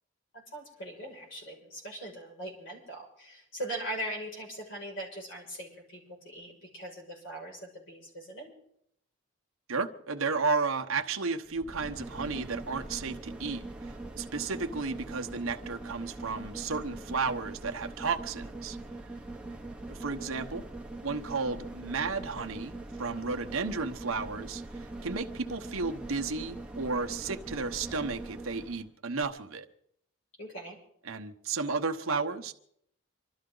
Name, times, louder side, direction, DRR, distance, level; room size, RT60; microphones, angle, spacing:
voice 1, 0.3-8.5 30.4-30.8, right 1 dB, 60° left, 6.0 m, -40 dB
voice 2, 9.7-18.8 19.9-20.6 21.0-29.7 31.0-32.5, right 4 dB, 85° right, 1.0 m, -33 dB
sound 1, 11.5-28.8 29.2-29.3, right 2 dB, 5° right, 0.9 m, -42 dB
25.5 x 13.0 x 3.9 m
head